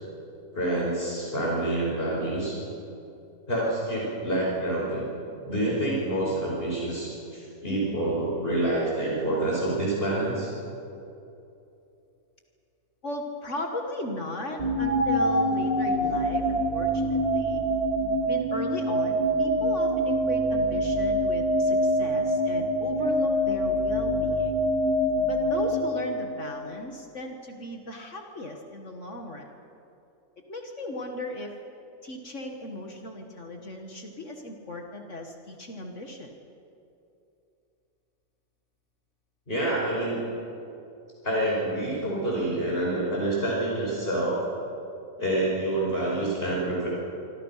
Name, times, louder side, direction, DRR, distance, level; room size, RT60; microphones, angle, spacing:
voice 1, 0.5-2.6 3.5-5.1 5.5-10.5 39.5-40.2 41.2-44.4 45.2-46.9, right 1 dB, 40° left, -5 dB, 5.6 m, -27 dB
voice 2, 13.0-17.6 18.3-24.6 25.3-29.5 30.5-31.5 32.0-36.3, left 1 dB, 55° left, 3 dB, 2.2 m, -36 dB
sound 1, 14.6-26.7, equal, 25° right, 1.7 m, -25 dB
26.0 x 25.5 x 5.8 m, 2.7 s
omnidirectional pair, 1.5 m